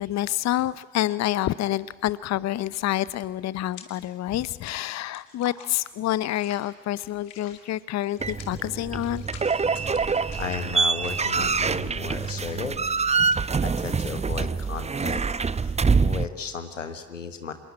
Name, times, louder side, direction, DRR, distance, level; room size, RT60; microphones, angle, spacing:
voice 1, 0.0-9.2, left 13 dB, 45° left, 19 dB, 0.7 m, -28 dB
sound 1, 1.8-2.1 2.4-4.1 4.4-16.0, left 8 dB, 75° left, 2.5 m, -49 dB
sound 2, 8.2-16.3, right 5 dB, 20° right, 0.7 m, -25 dB
voice 2, 9.7-12.8 13.6-15.2 15.5-17.5, left 5 dB, 90° left, 9 dB, 1.4 m, -35 dB
26.5 x 21.0 x 8.6 m, 1.3 s
figure-of-eight pair, 40°, 37 cm